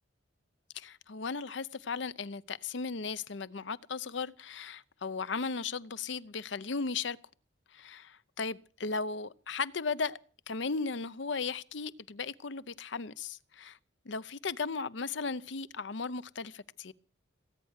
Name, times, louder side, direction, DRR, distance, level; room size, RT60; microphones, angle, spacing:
voice 1, 0.7-7.2 7.7-10.2 10.5-13.8 14.1-16.9, left 4 dB, 70° left, 0.7 m, -36 dB
19.0 x 9.2 x 8.1 m
head